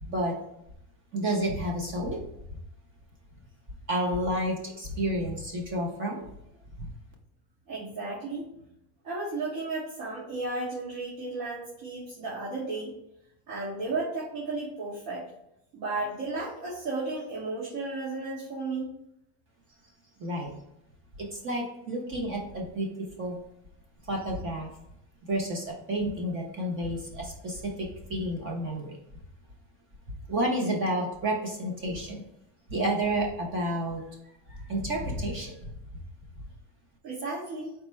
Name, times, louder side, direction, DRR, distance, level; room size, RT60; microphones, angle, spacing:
voice 1, 0.0-0.4 1.1-2.2 3.9-6.2 6.8-6.9 20.2-20.5 21.2-22.9 23.2-23.4 24.1-24.7 25.2-29.0 30.3-32.2 32.7-34.0 34.5-35.7, right 1 dB, 30° right, 0 dB, 0.5 m, -30 dB
voice 2, 7.7-8.5 9.0-12.9 13.5-15.2 15.7-18.9 37.0-37.7, right 3 dB, 60° right, -7 dB, 1.4 m, -34 dB
4.4 x 2.0 x 4.3 m, 0.81 s
cardioid pair, 165°, 46 cm